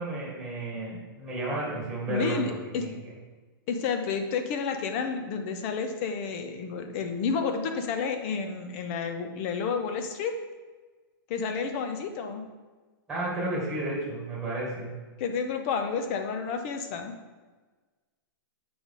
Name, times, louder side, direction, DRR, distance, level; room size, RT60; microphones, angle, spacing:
voice 1, 0.0-2.9 13.1-14.9, right 2 dB, 5° right, -6 dB, 2.2 m, -32 dB
voice 2, 2.1-2.9 3.7-10.4 11.3-12.5 15.2-17.2, left 5 dB, 35° left, 6 dB, 0.7 m, -30 dB
7.7 x 5.1 x 3.8 m, 1.3 s
hypercardioid pair, 165°, 12 cm